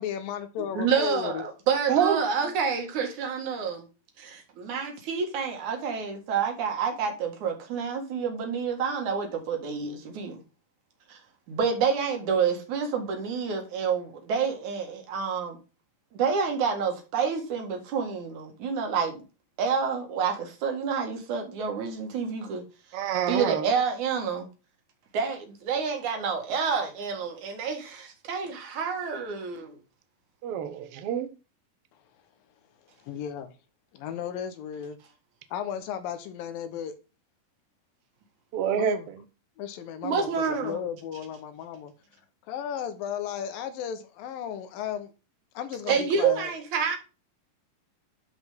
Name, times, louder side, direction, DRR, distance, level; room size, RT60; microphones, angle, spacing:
voice 1, 0.0-1.5 33.0-33.5 33.9-35.0 35.5-36.9 38.8-39.1 39.6-40.3 40.6-41.9 42.5-45.1 45.5-46.5, left 9 dB, 75° left, 2.7 m, -34 dB
voice 2, 0.6-3.9 4.2-10.4 11.1-11.2 11.5-15.6 16.1-19.2 19.6-22.6 23.3-24.5 25.1-29.8 40.0-40.9 45.9-47.0, right 6 dB, 60° right, 3.1 m, -28 dB
voice 3, 1.9-2.3 22.9-23.7 30.4-31.3 38.5-39.2, right 9 dB, 80° right, 1.3 m, -27 dB
12.0 x 5.2 x 3.6 m
omnidirectional pair, 4.2 m